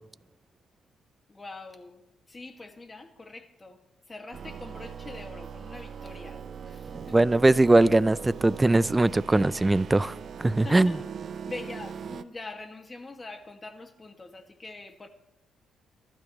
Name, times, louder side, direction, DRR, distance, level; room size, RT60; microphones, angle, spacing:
voice 1, 1.3-2.0 2.3-3.8 4.1-7.2 10.6-11.1 11.5-15.1, left 2 dB, 25° left, 1.9 m, -43 dB
sound 1, 4.3-12.2, right 7 dB, 55° right, 0.7 m, -40 dB
voice 2, 7.1-11.0, right 2 dB, 15° right, 0.5 m, -21 dB
24.5 x 12.0 x 3.1 m
cardioid pair, 90°, 0 cm